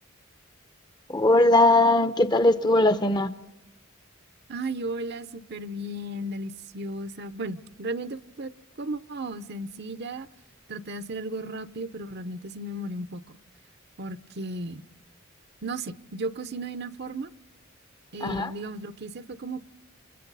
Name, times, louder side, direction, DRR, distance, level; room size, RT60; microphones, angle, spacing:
voice 1, 1.1-3.3 18.2-18.5, left 2 dB, 20° left, 0.7 m, -20 dB
voice 2, 4.5-8.5 8.8-10.3 10.7-13.2 14.0-14.8 15.6-17.3 18.1-19.6, right 2 dB, 50° right, 0.8 m, -35 dB
29.5 x 27.5 x 4.1 m
head